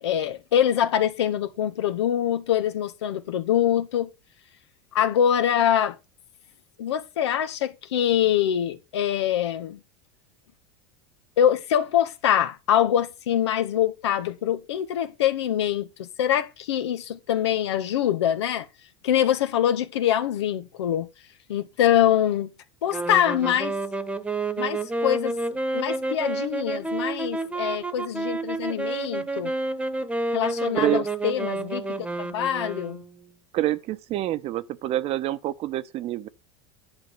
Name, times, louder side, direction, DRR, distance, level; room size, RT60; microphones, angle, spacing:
voice 1, 0.0-4.1 4.9-6.0 6.8-9.8 11.4-18.6 19.0-21.1 21.5-22.5 22.8-23.8 24.6-25.3 25.7-29.5 30.3-33.0, left 10 dB, 85° left, 1.6 m, -24 dB
sound 1, 22.9-33.3, right 2 dB, 10° right, 1.3 m, -29 dB
voice 2, 33.5-36.3, right 14 dB, 45° right, 1.0 m, -27 dB
11.0 x 4.7 x 7.0 m
supercardioid pair, 110°, 14 cm